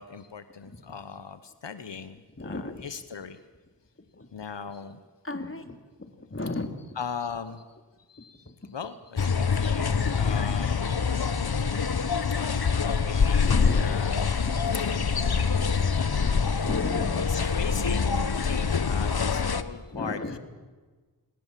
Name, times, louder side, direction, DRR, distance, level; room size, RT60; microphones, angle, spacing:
voice 1, 0.0-3.4 4.3-5.0 7.0-7.6 8.1-11.2 11.5-11.7 12.0-12.1 12.8-14.5 17.2-20.4, left 6 dB, 90° left, 12 dB, 1.1 m, -39 dB
voice 2, 2.4-2.8 4.1-4.3 5.2-6.8 8.5-8.6 10.1-10.4 11.5-11.6 13.4-14.0 16.2-17.3 19.9-20.4, left 2 dB, 30° left, 7 dB, 2.7 m, -35 dB
sound 1, 9.2-19.6, left 5 dB, 60° left, 1.2 m, -25 dB
28.5 x 19.0 x 7.6 m, 1.3 s
wide cardioid pair, 45°, 41 cm